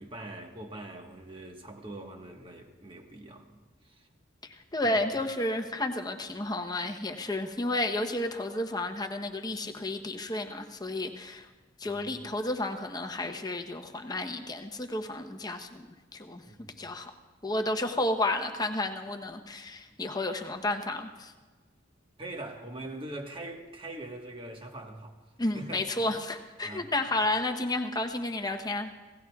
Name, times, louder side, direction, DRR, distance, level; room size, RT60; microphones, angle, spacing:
voice 1, 0.0-4.1 4.8-5.1 11.9-12.2 16.5-16.9 22.2-25.2 25.5-26.2 26.6-26.9, right 1 dB, 25° right, 1.4 m, -43 dB
voice 2, 4.4-11.5 11.8-16.4 16.8-17.1 17.4-21.3 25.4-28.9, left 2 dB, 20° left, 0.9 m, -32 dB
27.5 x 17.5 x 2.4 m
head